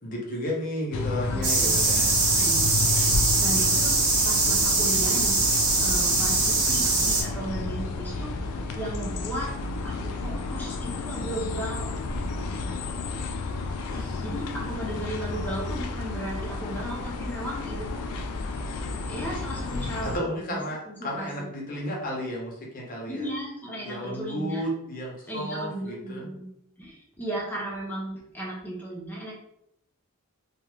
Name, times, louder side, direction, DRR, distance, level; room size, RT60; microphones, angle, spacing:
voice 1, 0.0-2.3 13.9-14.2 20.0-23.3 23.8-26.3, equal, 40° left, -2 dB, 0.7 m, -33 dB
sound 1, 0.9-20.2, left 3 dB, 90° left, 0.3 m, -31 dB
voice 2, 1.3-1.9 2.4-2.8 3.4-4.0 4.2-5.4 5.8-8.4 8.7-9.5 9.8-11.9 14.2-18.0 19.1-20.2 20.5-20.6 20.9-21.5 23.1-24.6 25.3-26.5 26.8-29.4, right 1 dB, 10° left, -3 dB, 0.7 m, -35 dB
sound 2, 1.4-7.2, right 3 dB, 85° right, 0.8 m, -22 dB
2.4 x 2.3 x 3.0 m, 0.79 s
head